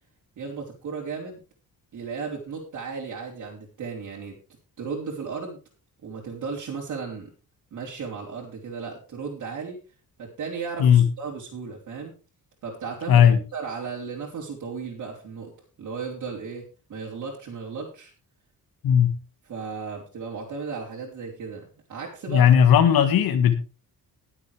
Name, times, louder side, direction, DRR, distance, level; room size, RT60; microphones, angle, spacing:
voice 1, 0.4-1.4 1.9-4.4 4.8-5.6 6.0-7.3 7.7-9.8 10.2-12.2 12.6-15.5 15.8-16.6 16.9-18.1 19.5-22.5, right 5 dB, 55° right, -3 dB, 3.6 m, -35 dB
voice 2, 13.1-13.4 18.8-19.1 22.3-23.5, left 8 dB, 90° left, 7 dB, 1.7 m, -16 dB
20.5 x 7.8 x 3.4 m, 0.34 s
cardioid pair, 155°, 35 cm